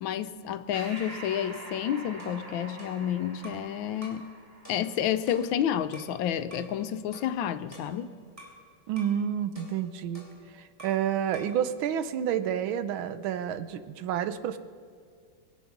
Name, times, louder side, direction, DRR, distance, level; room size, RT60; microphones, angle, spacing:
voice 1, 0.0-4.3 4.7-8.1, left 10 dB, 75° left, 1.4 m, -30 dB
Breathing, 0.7-5.6, right 2 dB, 30° right, 2.0 m, -45 dB
sound 1, 2.2-3.7 4.0-4.3 4.6-6.2 6.5-6.7 7.1-8.6 9.0-9.2 9.5-11.1 11.3-11.6, equal, 5° right, 3.3 m, -50 dB
voice 2, 8.9-10.3 10.5-14.6, right 9 dB, 80° right, 1.5 m, -29 dB
23.0 x 8.4 x 5.9 m
omnidirectional pair, 2.2 m